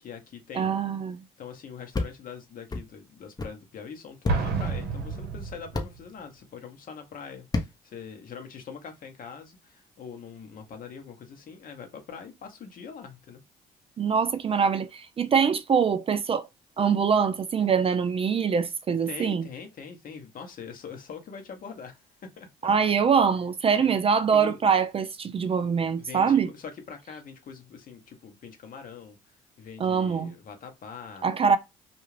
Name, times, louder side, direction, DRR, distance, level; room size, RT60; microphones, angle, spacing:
voice 1, 0.0-0.7 1.4-13.4 19.1-22.5 23.8-24.0 24.3-24.6 26.0-29.2 29.6-31.3, left 6 dB, 55° left, 0.9 m, -43 dB
voice 2, 0.6-1.2 14.0-16.5 16.8-19.5 22.6-26.5 29.8-30.3 31.2-31.6, right 6 dB, 35° right, 0.4 m, -24 dB
sound 1, 1.9-2.1 2.7-2.8 3.4-3.5 4.2-4.4 5.7-5.9 7.5-7.7, left 3 dB, 20° left, 0.7 m, -28 dB
Explosion, 4.3-6.1, right 5 dB, 70° right, 0.7 m, -29 dB
2.4 x 2.3 x 3.2 m
supercardioid pair, 65°, 18 cm